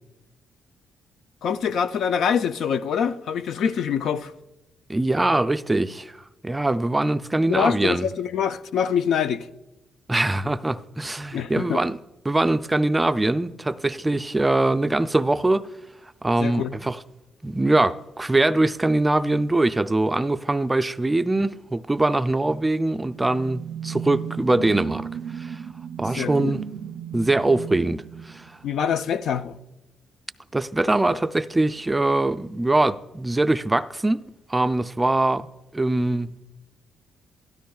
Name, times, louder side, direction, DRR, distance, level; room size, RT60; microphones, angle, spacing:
voice 1, 1.4-4.3 7.5-9.5 11.3-11.8 16.4-16.7 26.1-26.5 28.6-29.6, left 7 dB, 70° left, 0.4 m, -25 dB
voice 2, 4.9-6.2 6.4-8.1 10.1-12.0 12.3-15.7 16.2-17.0 17.4-25.1 25.3-25.6 26.0-26.6 27.1-28.5 30.5-34.2 34.5-35.5 35.7-36.3, right 2 dB, 15° right, 0.4 m, -22 dB
sound 1, 22.7-29.1, right 8 dB, 80° right, 0.4 m, -35 dB
13.0 x 12.5 x 2.3 m
cardioid pair, 90°, 0 cm